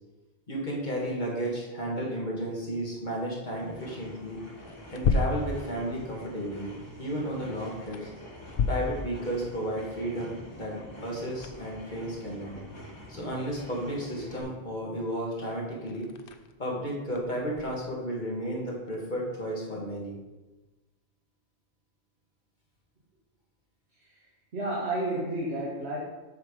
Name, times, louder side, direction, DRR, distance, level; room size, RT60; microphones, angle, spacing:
voice 1, 0.5-4.4 4.9-6.7 7.0-8.1 8.7-10.8 11.0-12.5 13.1-16.1 16.6-20.1, right 1 dB, 45° left, -3 dB, 2.2 m, -33 dB
sound 1, 2.3-19.5, left 4 dB, 60° left, 0.8 m, -37 dB
sound 2, 3.4-14.4, left 1 dB, 25° left, 2.2 m, -46 dB
voice 2, 23.9-24.3 24.5-26.0, right 1 dB, 75° right, -4 dB, 1.8 m, -31 dB
8.0 x 5.9 x 5.1 m, 1.2 s
omnidirectional pair, 1.1 m